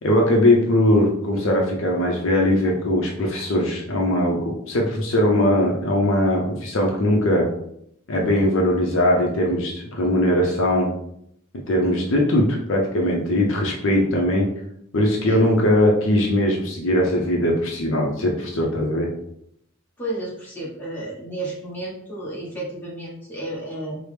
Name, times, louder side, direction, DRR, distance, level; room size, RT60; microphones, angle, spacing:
voice 1, 0.0-7.5 8.1-10.9 11.7-14.5 14.9-19.1, left 1 dB, 60° left, 0 dB, 0.6 m, -20 dB
voice 2, 20.0-24.0, right 1 dB, 10° left, -7 dB, 1.2 m, -32 dB
4.6 x 2.0 x 3.3 m, 0.74 s
head